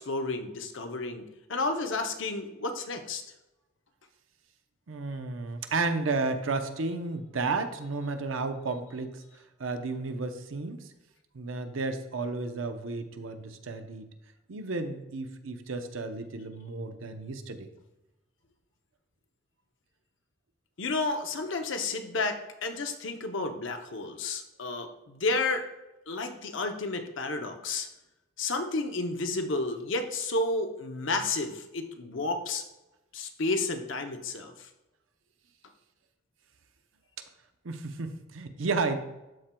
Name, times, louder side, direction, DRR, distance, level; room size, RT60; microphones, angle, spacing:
voice 1, 0.0-3.2 20.8-25.7 26.1-27.9 28.4-32.6 33.1-34.7, left 3 dB, 70° left, 6 dB, 0.7 m, -31 dB
voice 2, 4.9-9.2 9.6-10.9 11.3-14.1 14.5-17.7 37.6-39.0, right 3 dB, 85° right, 7 dB, 0.7 m, -32 dB
12.5 x 4.4 x 2.3 m, 1.0 s
head